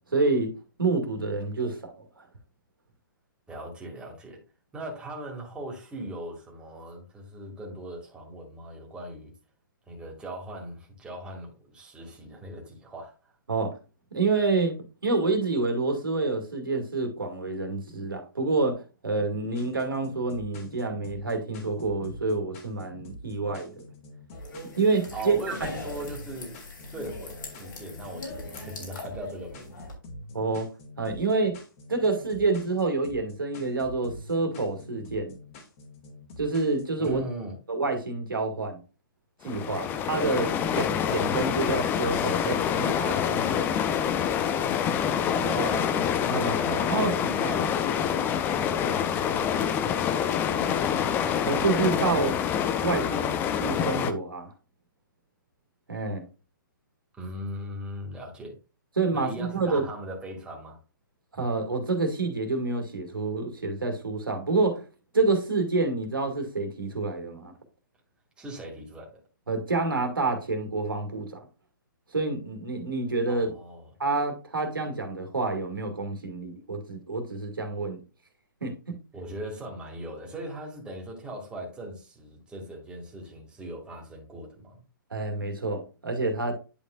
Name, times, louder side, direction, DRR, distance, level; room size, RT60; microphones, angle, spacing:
voice 1, 0.1-1.9 2.2-2.3 13.5-13.8 14.1-14.8 15.0-23.8 24.8-25.6 30.3-30.7 31.0-31.5 31.9-35.4 36.4-37.2 37.7-38.8 39.4-43.7 46.3-46.6 46.9-47.1 51.5-52.4 52.8-54.5 55.9-56.3 59.0-59.9 61.3-64.8 65.1-67.5 69.5-71.5 72.1-73.5 74.0-78.0 78.6-78.9 85.1-86.5, right 3 dB, 80° right, 2.1 m, -28 dB
voice 2, 3.5-4.4 4.7-9.3 9.9-13.3 25.1-26.6 26.9-29.7 37.0-37.6 45.3-46.0 46.6-49.8 50.5-51.2 57.2-58.5 59.1-60.8 68.4-69.2 73.3-73.9 79.1-84.8, right 1 dB, 10° right, 2.1 m, -39 dB
sound 1, 19.5-37.2, left 1 dB, 40° left, 2.2 m, -45 dB
sound 2, 24.3-29.9, left 2 dB, 65° left, 3.1 m, -41 dB
sound 3, 39.4-54.1, left 8 dB, 15° left, 0.5 m, -26 dB
10.0 x 5.2 x 2.4 m
figure-of-eight pair, 125°, 11 cm